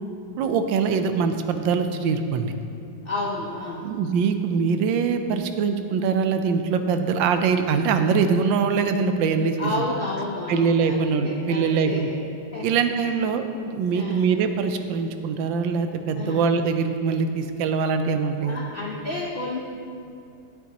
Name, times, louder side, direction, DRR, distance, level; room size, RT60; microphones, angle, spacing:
voice 1, 0.4-2.5 3.8-9.7 10.5-12.1 12.6-18.6, right 5 dB, 85° right, 8 dB, 1.3 m, -23 dB
voice 2, 3.0-3.9 9.6-12.2 12.5-13.1 13.9-14.2 16.2-16.5 18.4-19.6, left 2 dB, 70° left, -2 dB, 0.5 m, -31 dB
11.5 x 8.2 x 2.9 m, 2.5 s
omnidirectional pair, 2.0 m